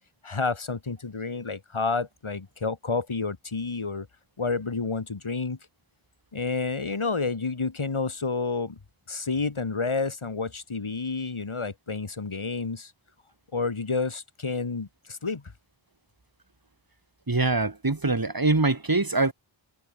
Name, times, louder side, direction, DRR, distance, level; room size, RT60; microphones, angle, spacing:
voice 1, 0.2-4.1 4.4-5.6 6.3-8.8 9.1-12.9 13.5-15.4, left 4 dB, 80° left, 7.9 m, -30 dB
voice 2, 17.3-19.3, right 3 dB, 45° right, 5.9 m, -23 dB
wide cardioid pair, 65°, 48 cm